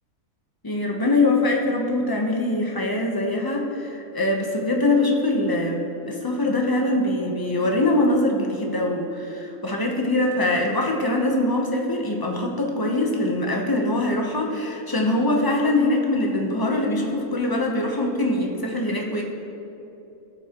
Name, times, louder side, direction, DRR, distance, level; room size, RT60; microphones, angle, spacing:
voice 1, 0.6-19.2, left 2 dB, 25° left, 1 dB, 0.5 m, -23 dB
16.5 x 6.5 x 2.9 m, 3.0 s
omnidirectional pair, 1.6 m